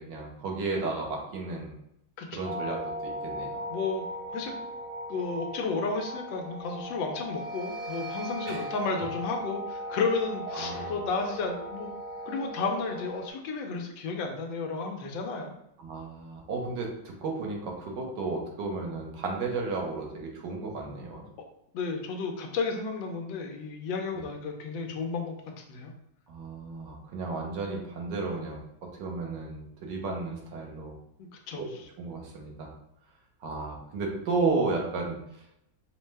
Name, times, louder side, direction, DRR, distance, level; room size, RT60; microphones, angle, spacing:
voice 1, 0.0-1.7 2.3-3.6 8.5-8.7 10.5-11.0 15.8-21.2 24.1-24.2 26.3-31.0 31.5-31.7 32.0-32.7 33.4-35.2, right 3 dB, 75° right, 0 dB, 1.5 m, -33 dB
voice 2, 2.2-2.5 3.7-4.0 4.3-4.5 5.1-11.9 12.3-15.5 21.7-25.3 25.7-25.9 31.5-31.7, left 4 dB, 85° left, 3 dB, 1.4 m, -32 dB
sound 1, 2.4-13.3, equal, 50° right, 0.9 m, -38 dB
5.2 x 2.1 x 3.2 m, 0.77 s
omnidirectional pair, 2.0 m